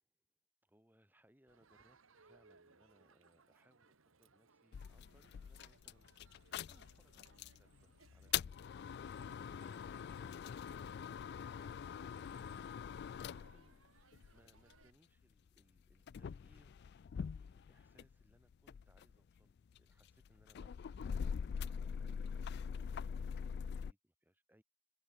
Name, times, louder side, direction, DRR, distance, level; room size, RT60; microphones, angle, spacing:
voice 1, 0.6-21.3 21.6-24.6, equal, 10° right, 5.3 m, -72 dB
Crowd, 1.5-14.9, right 4 dB, 75° right, 1.6 m, -68 dB
sound 1, 4.7-7.6 8.1-14.8 15.6-18.2 18.5-23.9, left 7 dB, 55° left, 0.3 m, -43 dB
open air
head